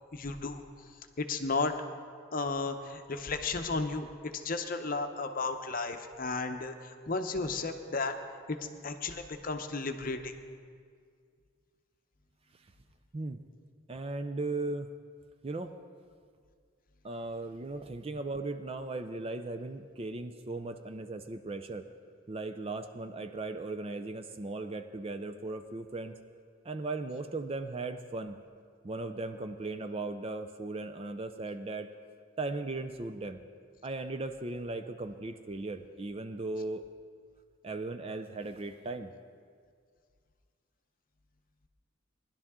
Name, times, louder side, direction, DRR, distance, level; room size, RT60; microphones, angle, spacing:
voice 1, 0.1-0.6 1.2-1.8 2.3-4.1 4.3-8.2 8.5-8.6 8.8-10.3, left 3 dB, 40° left, 6 dB, 0.7 m, -33 dB
voice 2, 13.9-14.9 15.4-15.7 17.0-21.9 22.3-26.2 26.6-28.4 28.8-31.9 32.4-33.4 33.8-36.9 37.6-39.1, right 2 dB, 25° right, 8 dB, 0.4 m, -37 dB
19.5 x 11.5 x 3.6 m, 2.1 s
head